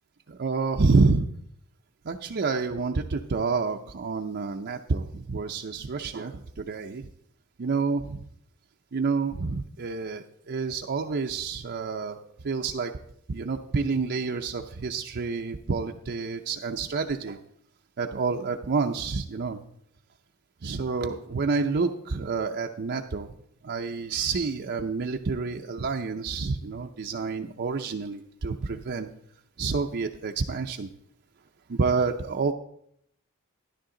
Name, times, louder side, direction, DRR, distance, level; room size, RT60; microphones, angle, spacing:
voice 1, 0.3-1.3 2.0-7.1 7.6-8.0 8.9-12.2 12.4-12.9 13.3-17.4 18.0-19.6 20.6-23.3 23.6-29.1 29.6-30.9 31.7-32.5, right 4 dB, 50° right, 3 dB, 0.6 m, -28 dB
12.5 x 11.0 x 3.8 m, 0.70 s
head